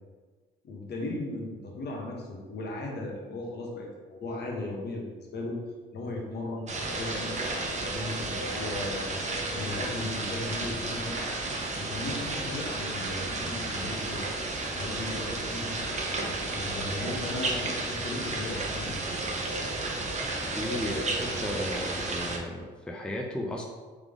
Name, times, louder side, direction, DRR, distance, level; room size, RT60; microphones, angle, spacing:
voice 1, 0.6-5.6 5.9-7.4 7.9-9.1 9.5-11.2 11.8-14.3 14.8-15.8 16.5-19.0, left 2 dB, 55° left, -1 dB, 1.1 m, -36 dB
sound 1, 6.7-22.4, right 2 dB, 35° right, 0.7 m, -32 dB
voice 2, 20.6-23.7, left 1 dB, 5° left, 0 dB, 0.5 m, -34 dB
3.6 x 3.4 x 3.6 m, 1.4 s
cardioid pair, 90°, 20 cm